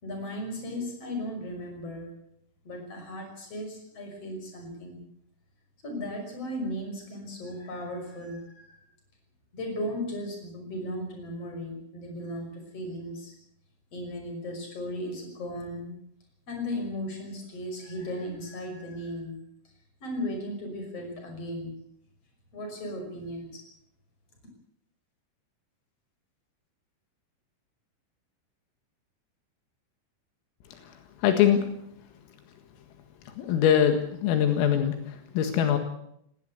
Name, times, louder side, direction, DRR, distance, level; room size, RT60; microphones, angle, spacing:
voice 1, 0.0-2.2 2.6-5.0 5.8-8.8 9.5-13.3 13.9-16.0 16.5-19.4 20.0-21.7 22.5-23.6, left 1 dB, 30° left, 4 dB, 6.3 m, -36 dB
voice 2, 31.2-31.6 33.3-35.8, left 9 dB, 80° left, 6 dB, 4.4 m, -23 dB
19.5 x 18.5 x 8.0 m, 0.72 s
omnidirectional pair, 5.9 m